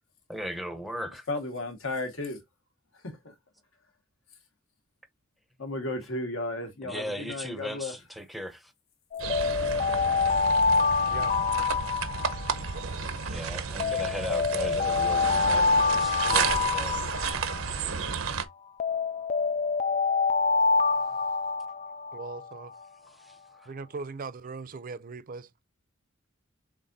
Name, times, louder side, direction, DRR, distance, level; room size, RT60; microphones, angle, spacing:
voice 1, 0.3-1.3 6.8-8.7 13.2-17.0 23.1-23.7, equal, ahead, 0.7 m, -38 dB
voice 2, 1.3-2.4 3.0-3.3 5.6-7.9, left 2 dB, 70° left, 1.4 m, -34 dB
Alarm, 9.1-13.3 13.8-18.3 18.8-22.6, left 4 dB, 35° left, 0.3 m, -26 dB
sound 1, 9.2-18.4, right 6 dB, 80° right, 0.8 m, -32 dB
voice 3, 11.0-11.4 22.1-22.8 23.7-25.5, right 4 dB, 45° right, 0.5 m, -39 dB
5.8 x 3.5 x 2.6 m
head